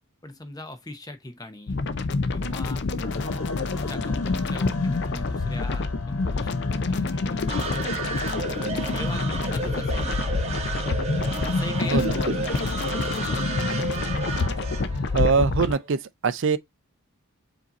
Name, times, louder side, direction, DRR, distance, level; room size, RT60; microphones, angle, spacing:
voice 1, 0.2-1.8 2.3-2.8 3.2-7.4 7.9-8.1 8.8-10.2 11.4-13.0, left 1 dB, 15° left, 0.7 m, -40 dB
sound 1, 1.7-15.7, left 3 dB, 50° left, 0.4 m, -27 dB
sound 2, 3.0-15.4, left 4 dB, 75° left, 1.1 m, -43 dB
sound 3, 7.5-15.9, right 3 dB, 30° right, 1.1 m, -32 dB
voice 2, 15.1-16.6, right 5 dB, 55° right, 0.4 m, -23 dB
5.0 x 2.7 x 4.0 m
head